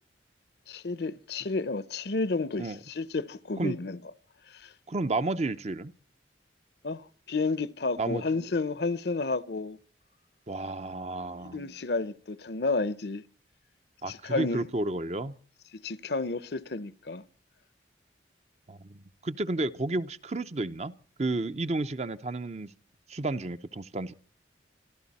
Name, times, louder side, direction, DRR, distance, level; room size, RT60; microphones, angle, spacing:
voice 1, 0.7-4.0 4.5-4.7 6.8-9.8 11.4-13.2 14.1-14.7 15.7-17.2, left 3 dB, 60° left, 0.7 m, -31 dB
voice 2, 4.9-5.9 8.0-8.2 10.5-11.7 14.0-15.3 18.7-22.7 23.1-24.1, right 2 dB, 35° right, 0.7 m, -32 dB
26.5 x 12.5 x 4.2 m
head